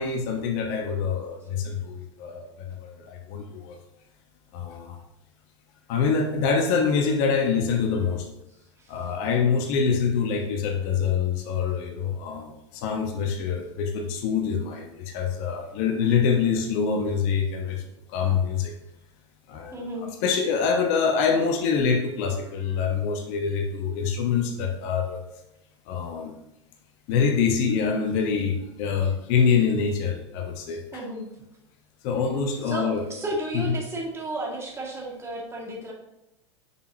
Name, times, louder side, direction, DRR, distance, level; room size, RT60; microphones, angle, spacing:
voice 1, 0.0-3.7 4.5-5.0 5.9-8.3 8.9-17.8 18.1-18.7 19.5-25.2 25.9-26.4 27.1-31.0 32.0-33.1 33.5-33.8, left 6 dB, 50° left, 3 dB, 1.1 m, -25 dB
voice 2, 19.7-20.1 30.9-31.3 32.6-35.9, right 1 dB, 15° right, -2 dB, 2.1 m, -33 dB
7.2 x 6.1 x 2.8 m, 0.87 s
figure-of-eight pair, 90°, 15 cm